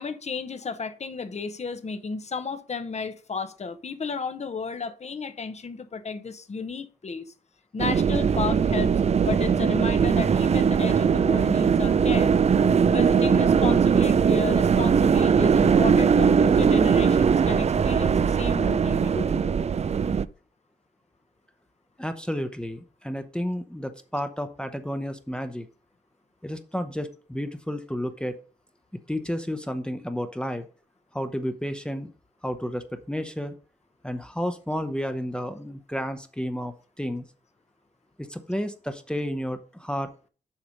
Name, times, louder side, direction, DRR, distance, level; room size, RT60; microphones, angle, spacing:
voice 1, 0.0-7.3 7.7-8.9 9.2-12.3 12.9-19.6, left 4 dB, 40° left, 0.9 m, -33 dB
sound 1, 7.8-20.2, right 6 dB, 40° right, 0.4 m, -20 dB
voice 2, 22.0-25.7 26.4-28.3 29.1-30.7 31.1-32.1 32.4-33.6 34.0-37.2 38.2-40.1, equal, 5° left, 0.9 m, -31 dB
7.4 x 5.0 x 5.1 m
cardioid pair, 60°, 18 cm